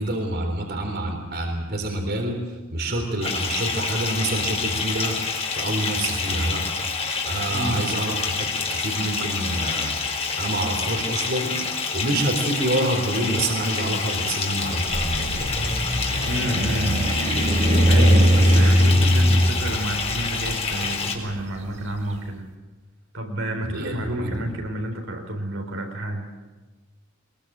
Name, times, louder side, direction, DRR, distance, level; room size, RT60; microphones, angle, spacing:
voice 1, 0.0-2.4 2.7-5.2 5.5-6.6 7.2-9.9 10.4-11.5 11.9-15.8 23.6-23.9 24.2-24.4, right 1 dB, 50° right, 3 dB, 3.9 m, -27 dB
Bathtub (filling or washing) / Fill (with liquid), 3.2-21.1, left 5 dB, 30° left, 4.1 m, -28 dB
voice 2, 7.5-7.9 16.2-17.1 17.9-22.5 23.1-26.3, right 1 dB, 70° right, 3 dB, 4.2 m, -29 dB
sound 1, 14.8-22.0, equal, 35° right, 3.1 m, -20 dB
23.0 x 22.0 x 7.6 m, 1.3 s
head